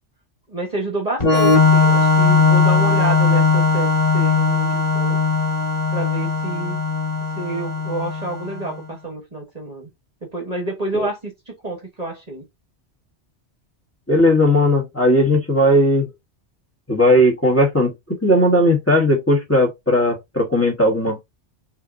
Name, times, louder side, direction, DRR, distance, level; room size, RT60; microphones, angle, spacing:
voice 1, 0.5-5.2 5.9-6.8 7.4-9.9 10.2-12.4, right 2 dB, 35° right, 1.5 m, -29 dB
Organ, 1.2-8.7, left 4 dB, 35° left, 1.8 m, -18 dB
voice 2, 14.1-16.1 16.9-17.9 18.2-21.2, left 1 dB, 10° left, 1.3 m, -17 dB
5.6 x 2.9 x 2.6 m
omnidirectional pair, 1.2 m